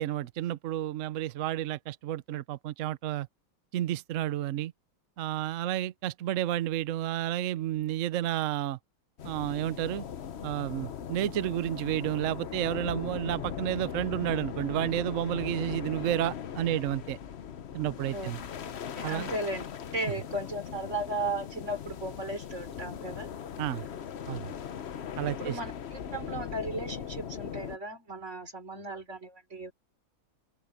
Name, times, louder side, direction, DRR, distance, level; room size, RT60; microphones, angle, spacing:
voice 1, 0.0-3.3 3.7-4.7 5.2-8.8 9.2-10.0 10.4-17.2 17.7-18.4 19.0-19.3 23.6-23.8 24.3-24.5 25.2-25.6, right 13 dB, 70° right, 0.7 m, -31 dB
sound 1, 9.2-27.8, left 8 dB, 70° left, 0.6 m, -39 dB
voice 2, 18.9-19.7 19.9-23.3 25.3-29.7, right 2 dB, 35° right, 4.6 m, -36 dB
open air
omnidirectional pair, 2.2 m